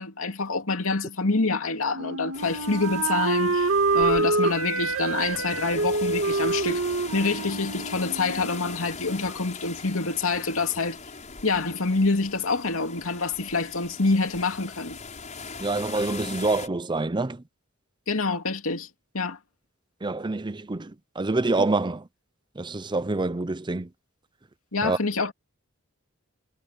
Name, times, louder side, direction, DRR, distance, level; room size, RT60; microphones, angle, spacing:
voice 1, 0.0-6.8 7.1-11.0 11.4-15.0 18.1-18.9 19.1-19.4 24.7-25.3, left 3 dB, 80° left, 2.6 m, -26 dB
Wind instrument woodwind instrument, 1.9-8.7, right 3 dB, 75° right, 2.3 m, -26 dB
sound 1, 2.3-16.7, left 4 dB, 35° left, 6.4 m, -41 dB
voice 2, 15.6-17.4 20.0-22.1 22.6-23.9 24.8-25.0, right 2 dB, 20° right, 0.6 m, -26 dB
head